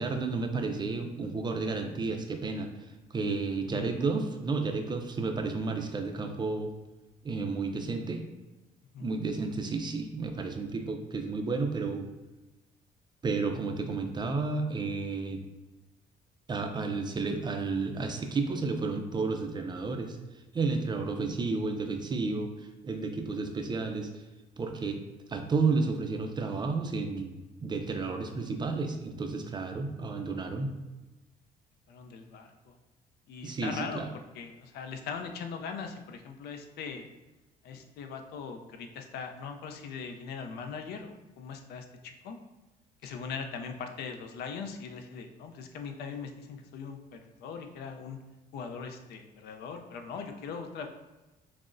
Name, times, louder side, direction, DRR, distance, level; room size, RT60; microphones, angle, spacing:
voice 1, 0.0-2.7 3.1-6.7 7.2-8.3 9.0-12.1 13.2-15.4 16.5-20.2 20.5-22.5 22.8-24.1 24.6-25.0 25.3-30.7 33.4-34.1, right 4 dB, 25° right, 5 dB, 0.4 m, -31 dB
voice 2, 31.9-32.8 33.3-37.1 37.6-42.4 43.0-48.2 48.5-50.9, left 5 dB, 75° left, 5 dB, 0.5 m, -40 dB
5.9 x 2.0 x 2.5 m, 1.1 s
cardioid pair, 110°, 17 cm